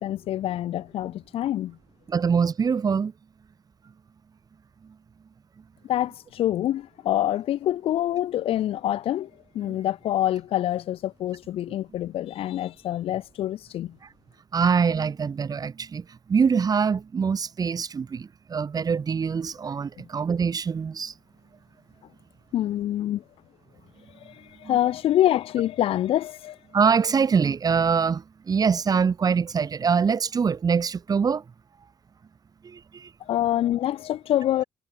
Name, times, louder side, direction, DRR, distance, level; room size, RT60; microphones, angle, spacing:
voice 1, 0.0-1.8 5.8-9.3 9.5-14.0 22.5-23.2 24.2-26.6 33.3-34.6, left 12 dB, 75° left, 1.0 m, -26 dB
voice 2, 2.1-3.1 9.7-9.8 14.5-21.1 24.6-24.8 26.7-31.4 32.6-33.1, right 6 dB, 40° right, 3.3 m, -24 dB
cardioid pair, 100°, 10 cm